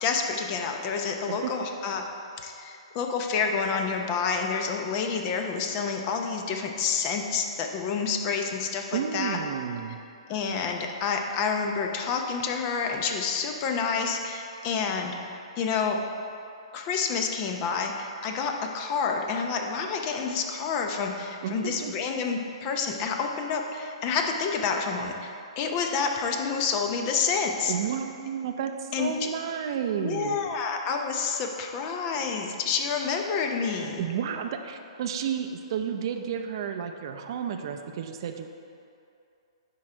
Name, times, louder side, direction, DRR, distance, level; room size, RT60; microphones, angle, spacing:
voice 1, 0.0-2.0 2.4-9.4 10.3-15.2 15.6-16.0 16.7-27.7 28.9-29.3 30.0-34.0, left 5 dB, 35° left, 3 dB, 0.7 m, -28 dB
voice 2, 8.9-10.0 21.4-21.9 27.7-30.4 34.0-38.5, right 8 dB, 50° right, 6 dB, 0.5 m, -31 dB
10.5 x 3.8 x 4.4 m, 2.6 s
hypercardioid pair, 140°, 3 cm